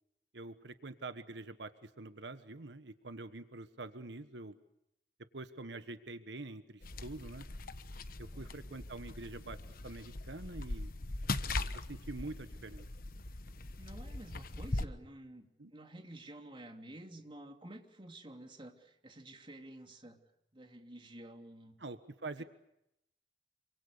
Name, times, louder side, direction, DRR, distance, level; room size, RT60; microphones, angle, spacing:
voice 1, 0.3-4.6 5.3-7.5 8.2-9.6 9.8-10.9 11.7-12.9 15.6-15.7 21.8-22.4, right 2 dB, 90° right, 10 dB, 1.4 m, -45 dB
sound 1, 6.8-14.9, left 2 dB, 55° left, 1.3 m, -40 dB
voice 2, 13.8-20.2 20.5-21.8 22.4-22.5, right 1 dB, 30° right, 4 dB, 3.0 m, -51 dB
27.5 x 25.0 x 6.8 m, 0.82 s
head